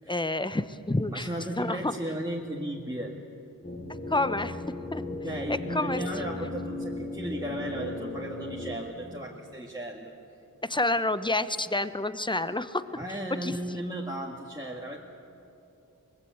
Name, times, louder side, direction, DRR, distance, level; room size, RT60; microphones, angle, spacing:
voice 1, 0.1-1.3 1.6-1.9 4.1-4.6 4.9-5.0 5.5-6.0 10.6-12.8 13.1-13.6, left 2 dB, 15° left, 13 dB, 0.9 m, -28 dB
voice 2, 1.1-3.2 5.2-10.1 13.0-15.0, right 1 dB, 10° right, -3 dB, 2.0 m, -35 dB
sound 1, 3.6-8.8, left 2 dB, 30° left, 3.4 m, -36 dB
24.0 x 20.0 x 8.1 m, 2.9 s
wide cardioid pair, 45°, 34 cm